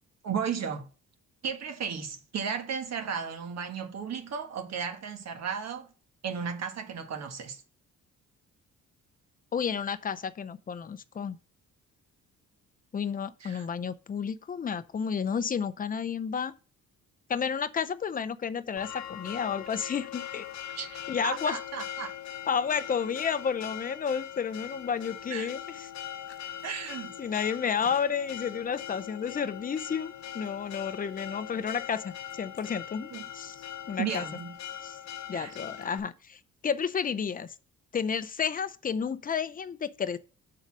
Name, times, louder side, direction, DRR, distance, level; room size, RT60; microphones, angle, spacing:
voice 1, 0.2-0.9 1.4-5.9 6.2-7.6 13.4-13.7 20.7-22.1 25.3-25.5 26.6-27.1 33.1-33.2 34.0-34.5 35.3-35.6, right 6 dB, 60° right, 1.5 m, -34 dB
voice 2, 9.5-11.4 12.9-16.5 17.3-20.5 21.1-21.6 22.5-25.9 27.2-34.2 34.8-35.0 35.3-37.5 37.9-40.2, left 7 dB, 30° left, 0.6 m, -31 dB
Church bell, 18.8-36.0, left 10 dB, 70° left, 0.7 m, -41 dB
6.5 x 4.0 x 6.2 m
cardioid pair, 90°, 30 cm